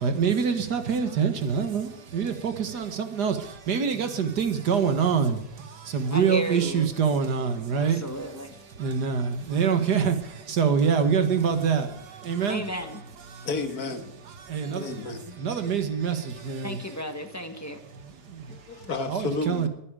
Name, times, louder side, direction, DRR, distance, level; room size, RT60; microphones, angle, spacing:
voice 1, 0.0-3.4 3.7-5.4 5.9-8.0 8.8-10.2 10.6-11.9 12.3-12.6 14.5-14.9 15.4-16.2 16.5-16.8 19.1-19.7, right 6 dB, 80° right, 8 dB, 2.1 m, -25 dB
voice 2, 6.1-6.9 7.8-8.6 12.5-13.0 16.6-17.8, equal, 10° left, 7 dB, 1.2 m, -33 dB
voice 3, 13.4-14.1 14.7-15.3 16.3-16.4 18.5-19.7, left 3 dB, 65° left, 7 dB, 2.2 m, -32 dB
22.0 x 9.7 x 5.1 m, 0.82 s
omnidirectional pair, 1.7 m